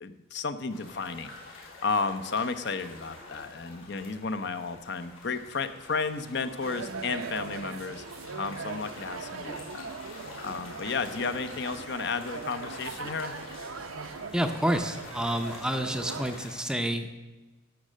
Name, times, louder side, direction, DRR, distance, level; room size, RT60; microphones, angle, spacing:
voice 1, 0.0-8.0 8.3-9.9 10.4-13.3, left 4 dB, 55° left, 11 dB, 0.7 m, -33 dB
sound 1, 0.7-16.6, left 2 dB, 75° left, 3.6 m, -47 dB
sound 2, 6.6-16.4, right 5 dB, 85° right, 0.8 m, -40 dB
voice 2, 14.3-17.2, equal, 5° right, 7 dB, 0.5 m, -29 dB
11.5 x 6.4 x 7.4 m, 1.2 s
head